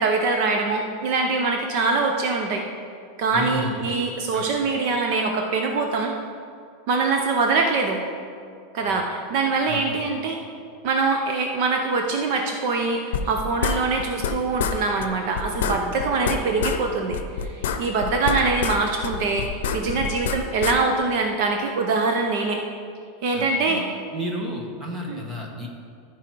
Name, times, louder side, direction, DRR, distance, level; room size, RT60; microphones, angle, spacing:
voice 1, 0.0-2.6 3.2-6.1 6.9-8.0 8.7-10.4 10.8-17.2 17.5-22.6 23.2-23.8 25.1-25.2, right 3 dB, 40° right, 2 dB, 0.6 m, -23 dB
voice 2, 3.3-3.8 4.3-4.5 8.8-9.0 9.7-10.0 23.3-23.8 24.1-25.7, equal, 10° right, -1 dB, 1.0 m, -32 dB
sound 1, 13.1-14.3 14.6-14.8 15.0-15.1 15.3-16.8 17.1-18.8 19.0-20.8, left 7 dB, 80° left, 0.7 m, -26 dB
14.5 x 4.8 x 4.6 m, 2.3 s
supercardioid pair, 180°, 0 cm